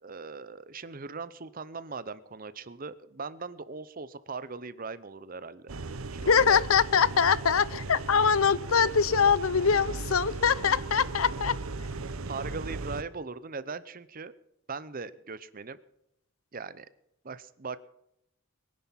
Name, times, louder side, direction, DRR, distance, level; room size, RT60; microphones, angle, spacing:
voice 1, 0.0-5.7 6.1-6.6 12.3-14.3 14.7-15.8 16.5-16.9 17.2-17.9, right 4 dB, 40° right, 0.8 m, -39 dB
sound 1, 5.7-13.0, right 3 dB, 90° right, 0.9 m, -37 dB
voice 2, 6.2-11.6, left 6 dB, 85° left, 0.7 m, -23 dB
22.5 x 10.5 x 5.8 m
head